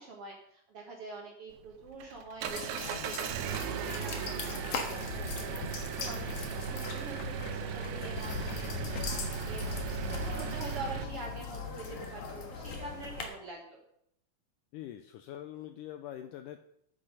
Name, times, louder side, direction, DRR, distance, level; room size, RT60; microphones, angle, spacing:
voice 1, 0.0-4.6 5.0-9.6 10.1-13.8, right 3 dB, 60° right, 0 dB, 1.6 m, -45 dB
Engine, 1.5-11.0, right 10 dB, 80° right, 2.5 m, -37 dB
sound 1, 2.4-13.2, left 5 dB, 55° left, 1.8 m, -39 dB
voice 2, 14.7-16.6, left 12 dB, 90° left, 8 dB, 1.8 m, -44 dB
8.7 x 8.0 x 6.5 m, 0.74 s
omnidirectional pair, 4.3 m